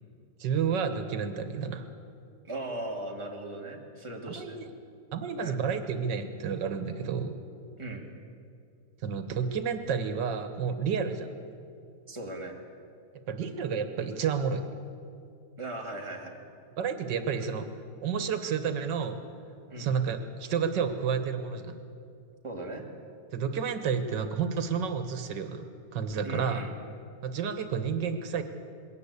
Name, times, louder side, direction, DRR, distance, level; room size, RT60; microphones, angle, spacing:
voice 1, 0.4-1.9 4.3-4.7 5.1-7.4 9.0-11.4 13.3-14.6 16.8-17.7 18.0-19.2 19.8-21.8 23.3-25.7 25.9-26.6 27.2-28.4, right 6 dB, 85° right, 9 dB, 1.9 m, -30 dB
voice 2, 2.4-4.6 5.4-5.6 7.8-8.1 12.1-12.6 15.6-16.4 19.7-19.9 22.4-22.9 26.2-26.7, right 1 dB, 15° right, 0 dB, 2.3 m, -38 dB
21.0 x 17.5 x 8.3 m, 2.5 s
omnidirectional pair, 1.9 m